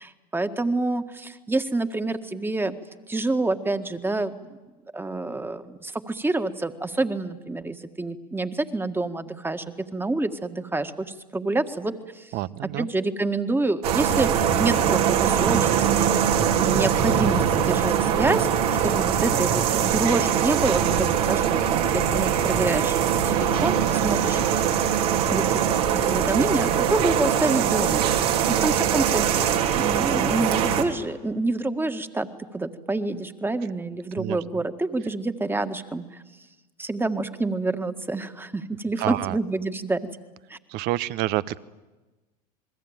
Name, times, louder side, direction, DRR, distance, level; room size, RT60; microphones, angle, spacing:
voice 1, 0.0-2.8 3.1-4.6 4.9-12.3 12.6-18.5 18.8-23.0 23.2-24.4 25.3-25.7 26.0-32.3 32.5-36.2 36.8-40.1 40.5-40.6, right 2 dB, 10° right, 9 dB, 1.8 m, -27 dB
voice 2, 12.3-12.9 34.2-34.4 39.0-39.4 40.7-41.6, right 16 dB, 55° right, 17 dB, 1.0 m, -27 dB
sound 1, 13.8-30.8, right 8 dB, 75° right, 3.2 m, -22 dB
28.0 x 21.0 x 9.0 m, 1.1 s
hypercardioid pair, 85°, 20 cm